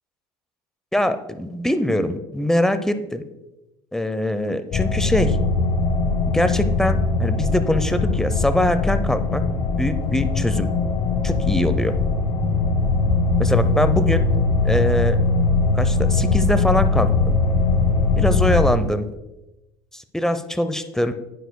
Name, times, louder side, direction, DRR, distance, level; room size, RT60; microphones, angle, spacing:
voice 1, 0.9-3.2 3.9-5.4 6.3-9.4 9.8-10.7 11.2-11.9 13.4-14.3 14.6-15.2 15.7-17.4 18.2-19.1 19.9-21.1, left 1 dB, 5° left, 11 dB, 0.6 m, -22 dB
sound 1, 4.7-18.7, left 3 dB, 65° left, 1.6 m, -21 dB
11.0 x 9.1 x 2.2 m, 1.0 s
supercardioid pair, 85°, 11 cm